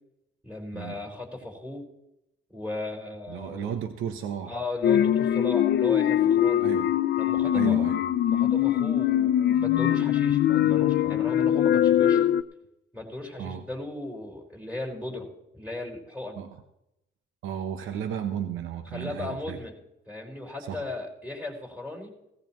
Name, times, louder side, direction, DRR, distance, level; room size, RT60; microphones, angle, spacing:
voice 1, 0.4-1.8 2.5-3.8 4.5-6.6 7.2-7.8 8.2-12.2 12.9-15.3 15.5-16.4 18.9-19.7 20.1-22.1, left 2 dB, 5° right, -1 dB, 5.0 m, -36 dB
voice 2, 3.3-4.5 6.6-6.9 7.4-8.0 13.4-13.6 16.4-16.6 17.4-19.6 20.6-20.8, right 9 dB, 90° right, 7 dB, 1.0 m, -34 dB
sound 1, 4.8-12.4, left 11 dB, 60° left, 0.6 m, -22 dB
17.0 x 14.5 x 3.1 m, 0.86 s
cardioid pair, 90°, 20 cm